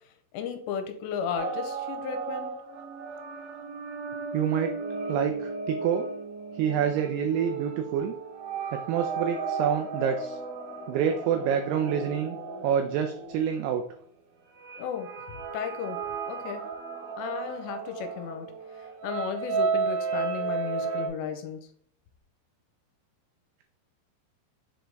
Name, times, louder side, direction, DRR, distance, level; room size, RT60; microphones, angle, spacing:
voice 1, 0.3-2.5 14.8-15.1 15.5-16.0 16.3-16.7 17.2-18.5 19.0-21.6, left 7 dB, 85° left, 6 dB, 2.9 m, -34 dB
sound 1, 1.4-13.9 14.6-21.1, right 4 dB, 70° right, 2.0 m, -34 dB
voice 2, 4.3-4.7 5.1-6.1 6.5-8.1 8.7-10.4 10.9-12.4 12.6-13.8, right 8 dB, 90° right, 6 dB, 2.3 m, -27 dB
7.5 x 3.9 x 3.4 m, 0.62 s
omnidirectional pair, 5.1 m